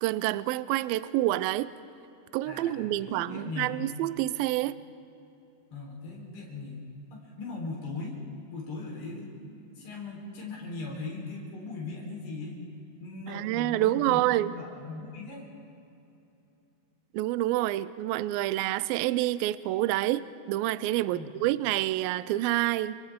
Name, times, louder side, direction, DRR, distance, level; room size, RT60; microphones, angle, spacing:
voice 1, 0.0-1.7 2.3-4.8 13.3-14.5 17.1-23.0, right 15 dB, 80° right, 15 dB, 2.2 m, -28 dB
voice 2, 2.5-3.7 5.7-6.8 7.1-8.2 8.5-12.6 13.0-15.5 21.1-21.4, left 3 dB, 80° left, -3 dB, 6.1 m, -39 dB
30.0 x 26.0 x 3.7 m, 2.7 s
omnidirectional pair, 4.7 m